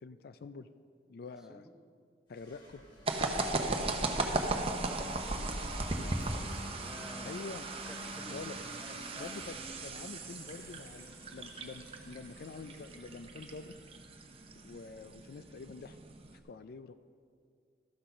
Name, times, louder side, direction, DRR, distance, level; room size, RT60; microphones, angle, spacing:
voice 1, 0.0-0.7 1.1-1.7 2.3-2.8 7.2-7.7 8.3-8.6 9.2-13.7 14.5-16.0 16.4-16.9, left 4 dB, 60° left, 12 dB, 0.4 m, -46 dB
sound 1, 2.3-14.1, left 1 dB, 25° left, 2.0 m, -51 dB
sound 2, 3.1-16.4, right 2 dB, 35° right, 0.8 m, -37 dB
voice 2, 4.8-7.4 7.7-8.5 8.8-9.4, equal, 5° right, 3 dB, 0.8 m, -52 dB
13.5 x 6.2 x 5.6 m, 2.2 s
head